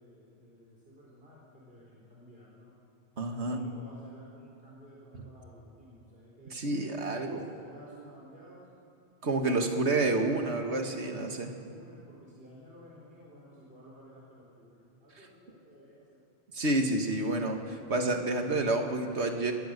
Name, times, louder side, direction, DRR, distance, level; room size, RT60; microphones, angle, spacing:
voice 1, 0.0-2.8 3.4-8.7 9.3-9.8 10.2-16.2, equal, 60° right, -5 dB, 4.1 m, -53 dB
voice 2, 3.2-3.6 5.1-5.2 6.5-7.5 9.2-11.5 15.2-15.3 16.5-19.5, right 2 dB, 75° right, 4 dB, 2.0 m, -29 dB
22.0 x 19.0 x 6.7 m, 2.5 s
omnidirectional pair, 1.1 m